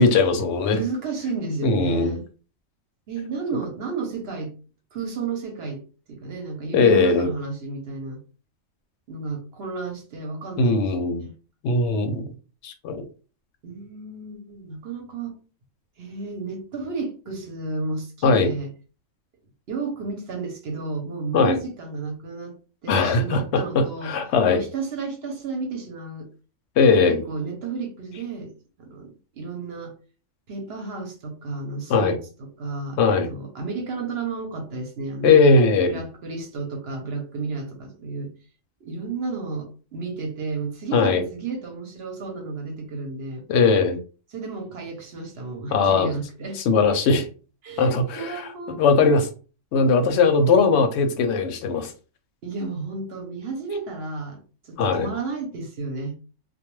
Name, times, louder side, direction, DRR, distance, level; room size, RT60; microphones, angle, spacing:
voice 1, 0.0-0.8 1.6-2.2 6.7-7.3 10.6-11.2 11.6-12.3 12.6-13.0 18.2-18.5 21.3-21.5 22.9-24.6 26.8-27.2 31.9-32.2 33.0-33.3 35.2-36.0 40.9-41.2 43.5-44.0 45.7-46.1 46.7-47.3 47.8-48.3 48.7-49.3 49.7-51.9 54.8-55.1, left 4 dB, 65° left, 0.8 m, -19 dB
voice 2, 0.7-2.2 3.1-4.5 4.9-5.8 6.1-8.2 9.1-11.3 13.6-15.4 16.0-18.7 19.7-22.6 22.8-24.1 24.5-26.3 26.9-28.5 28.8-29.9 30.5-33.0 33.3-35.4 35.9-38.3 38.8-43.4 44.3-46.6 47.6-49.0 52.4-56.1, right 4 dB, 55° right, 0.8 m, -32 dB
2.2 x 2.2 x 3.0 m
omnidirectional pair, 1.4 m